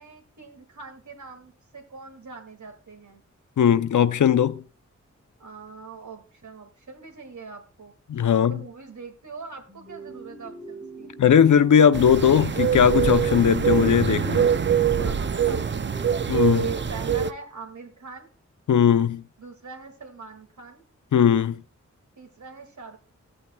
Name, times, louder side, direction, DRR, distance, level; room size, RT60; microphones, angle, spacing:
voice 1, 0.0-3.2 5.4-7.9 8.3-11.1 15.0-16.0 16.5-18.3 19.4-20.8 22.2-23.0, right 4 dB, 70° right, 2.1 m, -42 dB
voice 2, 3.6-4.6 8.1-8.5 11.2-14.5 16.3-16.7 18.7-19.2 21.1-21.6, left 8 dB, 80° left, 0.6 m, -18 dB
sound 1, 9.7-16.8, right 3 dB, 20° right, 4.2 m, -42 dB
sound 2, 11.9-17.3, right 7 dB, 40° right, 0.5 m, -24 dB
15.0 x 8.7 x 2.3 m
wide cardioid pair, 100°, 30 cm